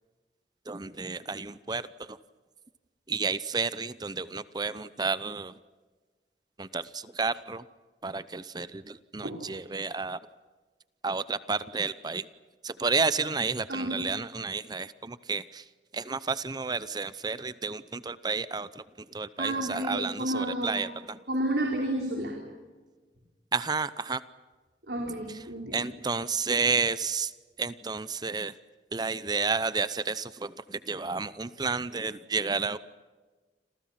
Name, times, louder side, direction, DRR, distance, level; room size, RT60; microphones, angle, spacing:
voice 1, 0.7-2.2 3.1-5.6 6.6-7.6 8.0-10.2 11.0-12.3 12.6-15.7 15.9-21.2 23.5-24.2 25.7-27.3 27.6-28.5 28.9-32.8, right 4 dB, 25° right, 15 dB, 0.7 m, -31 dB
voice 2, 13.7-14.1 19.4-20.8 21.3-22.4 24.9-25.8, right 1 dB, 70° right, -1 dB, 4.5 m, -31 dB
29.5 x 27.0 x 5.9 m, 1.3 s
head